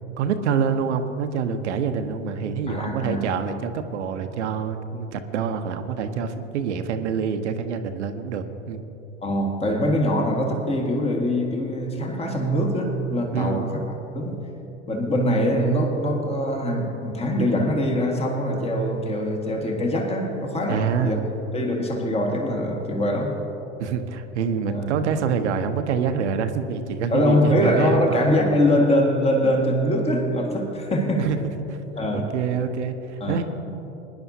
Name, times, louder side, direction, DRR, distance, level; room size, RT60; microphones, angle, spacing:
voice 1, 0.2-8.8 13.3-13.7 20.7-21.3 23.8-28.4 29.4-29.5 31.2-31.4 31.7-31.8 32.1-33.4, right 6 dB, 70° right, 8 dB, 0.9 m, -26 dB
voice 2, 2.7-3.2 9.2-13.8 14.1-14.4 14.9-21.2 21.5-23.4 24.7-24.9 27.1-31.3 32.0-32.3 33.2-33.4, equal, 15° left, 1 dB, 1.7 m, -23 dB
21.0 x 10.5 x 2.8 m, 3.0 s
hypercardioid pair, 85°, 36 cm